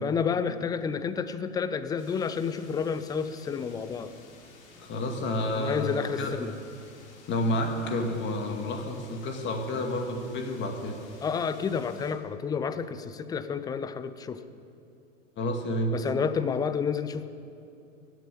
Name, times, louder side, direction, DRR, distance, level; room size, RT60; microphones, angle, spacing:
voice 1, 0.0-4.1 5.5-6.5 11.2-14.4 15.9-17.3, left 6 dB, 10° left, 12 dB, 0.5 m, -30 dB
sound 1, 2.0-12.1, left 3 dB, 55° left, 3.9 m, -54 dB
voice 2, 4.8-6.3 7.3-11.0 15.4-16.0, left 1 dB, 30° left, 4 dB, 2.1 m, -30 dB
16.5 x 7.6 x 9.9 m, 2.6 s
figure-of-eight pair, 105°, 40 cm